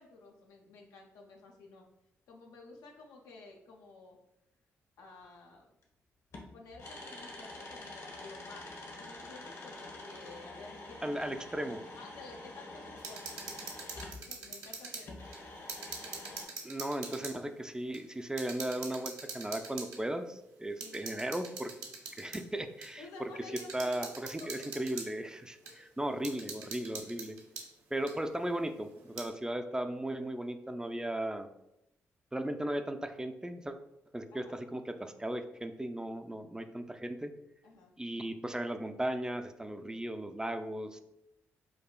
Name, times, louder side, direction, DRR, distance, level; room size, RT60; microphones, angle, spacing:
voice 1, 0.0-1.8 2.3-4.2 5.0-5.7 6.5-11.2 12.0-13.2 14.2-15.3 20.8-21.4 23.0-24.1 24.4-24.5 25.6-26.0 34.3-34.5 37.6-37.9, left 3 dB, 85° left, 0 dB, 0.6 m, -52 dB
sound 1, 5.8-5.9 6.3-14.2 15.0-16.4, left 2 dB, 60° left, 1.0 m, -47 dB
voice 2, 11.0-11.9 16.6-21.7 22.1-23.0 23.7-27.4 27.9-31.5 32.3-33.8 34.1-37.3 38.0-41.0, right 1 dB, 10° right, 7 dB, 0.3 m, -36 dB
sound 2, 13.0-15.1 15.3-17.4 17.9-18.0 18.4-20.0 20.8-22.4 22.8-22.9 23.6-25.1 25.7-25.8 26.2-27.7 28.1-28.2 29.0-29.3, right 4 dB, 80° right, 0.6 m, -43 dB
4.7 x 2.4 x 2.2 m, 0.84 s
supercardioid pair, 50°, 6 cm